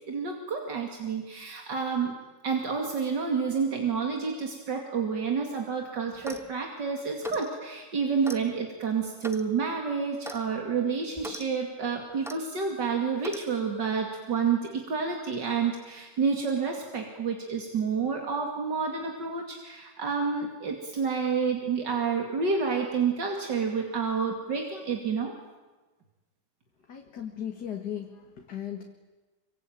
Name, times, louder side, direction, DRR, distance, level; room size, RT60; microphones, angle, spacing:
voice 1, 0.1-2.2 2.4-25.3, right 5 dB, 85° right, 2 dB, 3.1 m, -29 dB
Clock, 6.1-6.5 7.2-7.5 8.2-8.4 9.2-9.5 10.2-10.4 11.2-11.4 12.2-12.4 13.2-13.5, equal, ahead, 1.0 m, -39 dB
voice 2, 26.9-28.9, left 9 dB, 70° left, 3 dB, 2.4 m, -37 dB
25.5 x 24.5 x 9.1 m, 1.2 s
omnidirectional pair, 1.8 m